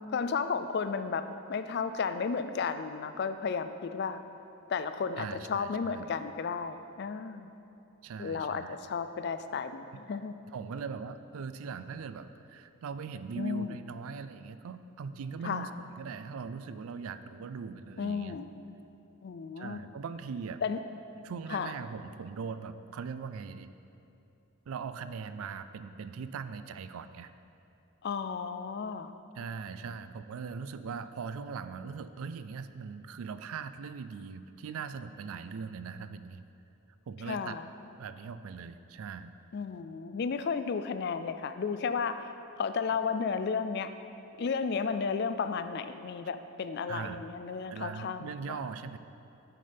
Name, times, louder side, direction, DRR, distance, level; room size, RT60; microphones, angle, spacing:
voice 1, 0.1-4.2 4.7-7.5 8.2-10.3 13.4-13.8 15.4-15.7 18.0-18.5 19.2-19.8 20.6-20.8 21.5-21.7 28.0-29.1 37.3-37.6 39.5-42.3 42.6-43.9 44.4-48.6, left 5 dB, 45° left, 10 dB, 0.3 m, -33 dB
voice 2, 5.2-6.1 8.0-8.8 10.5-18.4 19.6-20.6 21.2-23.7 24.7-27.3 29.3-36.5 37.1-37.6 38.0-39.3 46.9-47.3 47.7-49.0, right 5 dB, 70° right, 12 dB, 0.3 m, -40 dB
9.5 x 7.6 x 3.4 m, 2.8 s
head